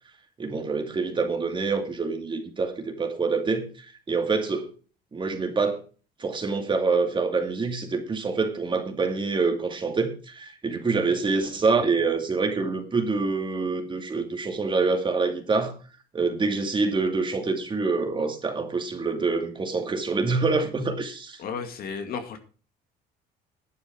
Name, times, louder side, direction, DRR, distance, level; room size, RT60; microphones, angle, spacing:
voice 1, 0.4-4.7 5.1-5.8 6.2-15.7 16.1-21.4, right 4 dB, 30° right, 2.4 m, -26 dB
voice 2, 21.4-22.4, left 6 dB, 60° left, 2.2 m, -33 dB
11.0 x 9.1 x 4.6 m
cardioid pair, 110°, 17 cm